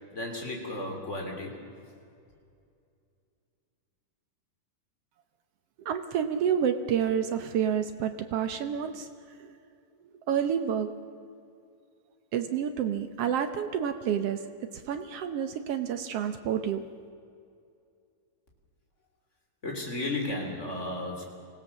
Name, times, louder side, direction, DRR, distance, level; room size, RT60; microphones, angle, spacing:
voice 1, 0.1-1.6 19.6-21.2, left 2 dB, 20° left, 1 dB, 3.3 m, -34 dB
voice 2, 5.8-9.1 9.4-9.5 10.3-10.9 12.3-14.4 14.7-16.8, right 8 dB, 80° right, 8 dB, 1.4 m, -29 dB
25.5 x 17.0 x 7.3 m, 2.4 s
omnidirectional pair, 4.0 m